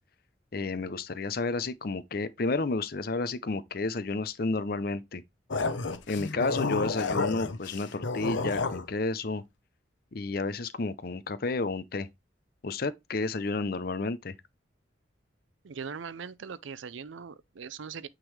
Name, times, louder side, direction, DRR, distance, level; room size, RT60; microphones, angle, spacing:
voice 1, 0.5-5.2 6.1-9.4 10.1-12.1 12.6-14.3, left 3 dB, 50° left, 0.6 m, -31 dB
sound 1, 5.5-8.9, left 3 dB, 85° left, 0.8 m, -31 dB
voice 2, 15.6-18.1, right 6 dB, 85° right, 0.5 m, -40 dB
9.0 x 3.8 x 3.2 m
head